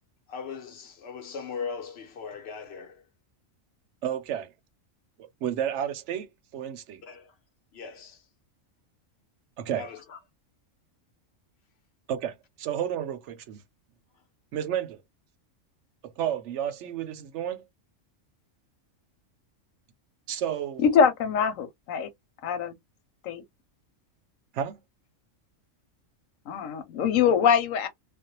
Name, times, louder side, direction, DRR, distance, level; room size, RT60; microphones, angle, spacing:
voice 1, 0.3-3.0 7.0-7.3 7.7-8.2 9.7-10.2, left 5 dB, 55° left, 1.0 m, -39 dB
voice 2, 4.0-4.5 5.2-7.0 9.6-9.8 12.1-13.6 14.5-15.0 16.0-17.6 20.3-20.9 24.5-24.8, right 10 dB, 70° right, 0.8 m, -31 dB
voice 3, 20.8-22.1 22.4-22.7 23.2-23.4 26.5-27.9, left 7 dB, 90° left, 1.0 m, -23 dB
2.5 x 2.1 x 2.7 m
omnidirectional pair, 1.4 m